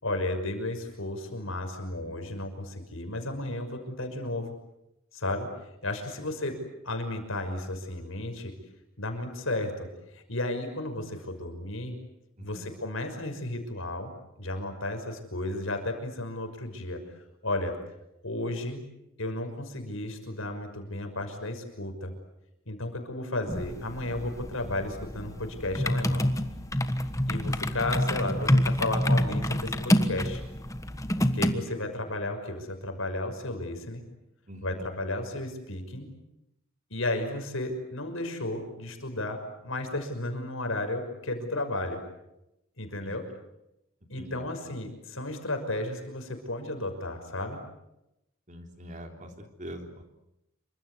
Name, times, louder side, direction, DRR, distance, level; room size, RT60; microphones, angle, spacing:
voice 1, 0.0-4.5 5.1-6.6 6.8-8.5 9.0-11.9 12.4-14.1 14.4-17.0 17.4-17.7 18.2-18.8 19.2-22.1 22.7-26.3 27.3-30.4 31.3-34.0 34.6-36.1 36.9-42.0 42.8-43.3 44.1-47.6, left 2 dB, 70° left, 6 dB, 6.0 m, -33 dB
voice 2, 12.4-12.7 34.5-34.8 43.0-43.2 44.1-44.4 48.5-49.3 49.6-50.0, equal, 35° right, 4 dB, 3.6 m, -43 dB
sound 1, 23.5-31.5, left 1 dB, 15° left, 1.4 m, -27 dB
28.0 x 25.0 x 8.2 m, 0.88 s
head